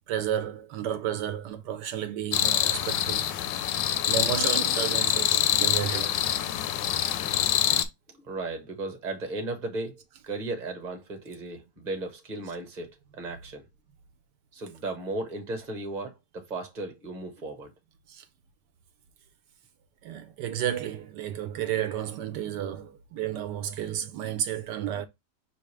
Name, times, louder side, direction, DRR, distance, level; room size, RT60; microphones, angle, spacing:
voice 1, 0.1-3.2 4.0-6.2 18.1-18.2 20.0-25.1, right 10 dB, 80° right, 1.2 m, -32 dB
sound 1, 2.3-7.8, left 11 dB, 90° left, 1.3 m, -25 dB
voice 2, 8.1-13.7 14.5-17.7, right 2 dB, 30° right, 1.1 m, -36 dB
6.0 x 2.7 x 3.2 m
omnidirectional pair, 1.9 m